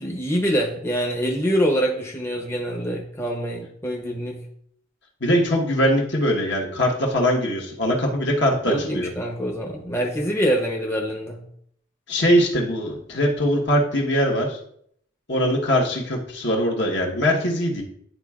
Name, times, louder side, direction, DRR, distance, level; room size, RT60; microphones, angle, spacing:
voice 1, 0.0-4.4 8.7-11.4, equal, 15° left, -1 dB, 0.7 m, -25 dB
voice 2, 5.2-9.1 12.1-14.6 15.3-17.8, equal, 60° left, -1 dB, 1.3 m, -21 dB
10.5 x 4.2 x 2.4 m, 0.68 s
head